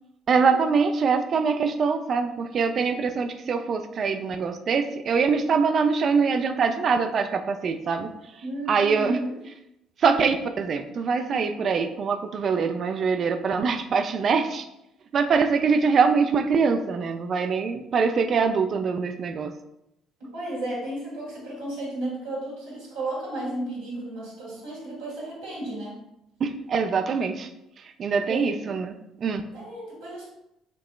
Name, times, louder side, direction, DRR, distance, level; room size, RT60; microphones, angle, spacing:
voice 1, 0.3-8.4 8.7-9.2 10.0-14.7 15.1-19.5 26.4-27.5 27.8-29.4, right 5 dB, 50° right, 8 dB, 0.4 m, -24 dB
voice 2, 8.4-9.4 20.3-26.0 28.3-28.5 29.5-30.3, right 1 dB, 85° right, -7 dB, 1.3 m, -33 dB
5.2 x 2.8 x 2.2 m, 0.85 s
hypercardioid pair, 55°, 0 cm